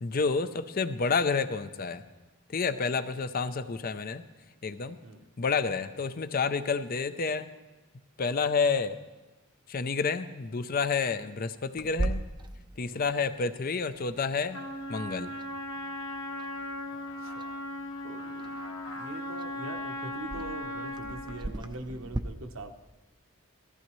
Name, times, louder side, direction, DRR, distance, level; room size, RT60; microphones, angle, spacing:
voice 1, 0.0-2.0 2.5-4.2 4.6-5.0 5.4-7.5 8.2-9.0 9.7-12.2 12.8-14.6 14.9-15.3, left 5 dB, 40° left, 12 dB, 0.5 m, -29 dB
Clock, 11.8-22.2, right 2 dB, 20° right, 0.5 m, -40 dB
Trumpet, 14.5-21.5, left 1 dB, 60° left, 1.7 m, -37 dB
voice 2, 16.9-17.5 18.0-18.7 18.9-22.7, right 2 dB, 65° right, 7 dB, 1.0 m, -43 dB
18.0 x 14.5 x 3.1 m, 1.2 s
head